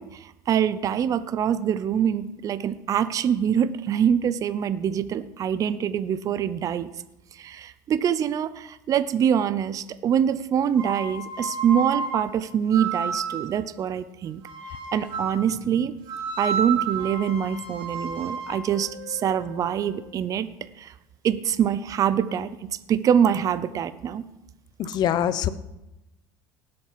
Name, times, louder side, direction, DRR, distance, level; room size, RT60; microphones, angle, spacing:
voice 1, 0.0-6.9 7.3-14.4 14.7-16.0 16.4-20.5 20.8-20.9 21.2-24.2, right 8 dB, 35° right, 14 dB, 0.6 m, -24 dB
sound 1, 10.7-13.6 14.4-15.5 16.1-20.1, right 5 dB, 55° right, 4.0 m, -32 dB
voice 2, 24.8-25.5, left 10 dB, 45° left, 14 dB, 0.9 m, -24 dB
18.0 x 7.8 x 5.8 m, 0.94 s
cardioid pair, 125°, 10 cm